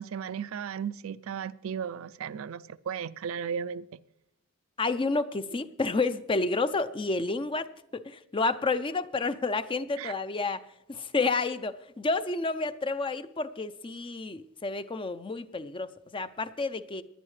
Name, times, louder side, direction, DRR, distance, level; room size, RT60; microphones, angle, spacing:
voice 1, 0.0-4.0 10.0-10.1, right 7 dB, 70° right, 0.4 m, -35 dB
voice 2, 4.8-10.6 10.9-17.0, left 3 dB, 25° left, 0.5 m, -30 dB
19.5 x 11.0 x 3.3 m
head